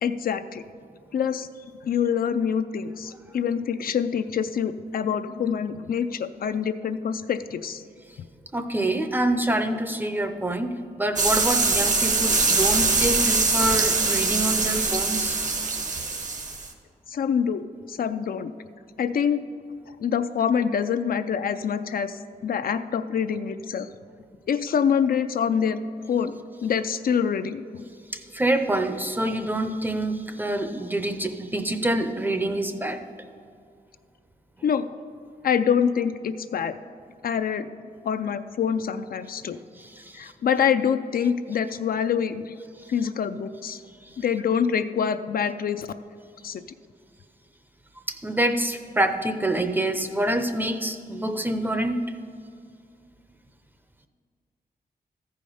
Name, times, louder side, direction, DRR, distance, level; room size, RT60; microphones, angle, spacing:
voice 1, 0.0-0.6 1.1-7.8 17.1-17.6 17.9-18.5 19.0-19.4 20.0-23.9 24.5-25.8 26.1-26.3 26.6-27.8 34.6-34.9 35.4-36.8 37.2-37.7 38.0-39.6 40.1-42.5 42.9-43.8 44.2-45.9 46.4-46.6, left 7 dB, 65° left, 10 dB, 0.4 m, -25 dB
voice 2, 8.5-15.4 28.1-33.0 39.8-40.3 48.1-52.0, right 1 dB, 10° right, 8 dB, 0.6 m, -26 dB
sound 1, 11.2-16.7, right 4 dB, 50° right, 1.0 m, -23 dB
14.0 x 5.0 x 5.4 m, 2.3 s
wide cardioid pair, 120°, 16 cm